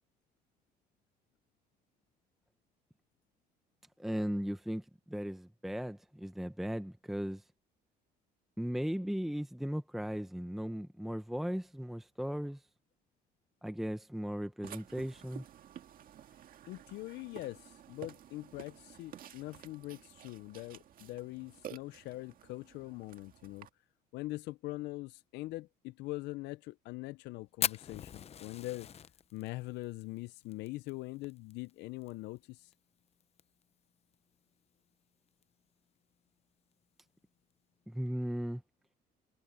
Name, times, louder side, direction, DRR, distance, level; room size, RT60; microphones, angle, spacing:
voice 1, 4.0-7.4 8.6-12.6 13.6-15.4 37.9-38.6, equal, ahead, 0.9 m, -37 dB
Burping eructation, 14.6-23.7, right 10 dB, 55° right, 1.8 m, -52 dB
voice 2, 16.7-23.7 24.1-28.9 29.3-32.7, left 19 dB, 85° left, 0.5 m, -43 dB
Fire, 27.6-32.1 32.4-32.5 32.7-32.8 33.2-33.6 34.1-34.2 35.3-35.4, left 8 dB, 40° left, 0.7 m, -38 dB
cardioid pair, 110°, 17 cm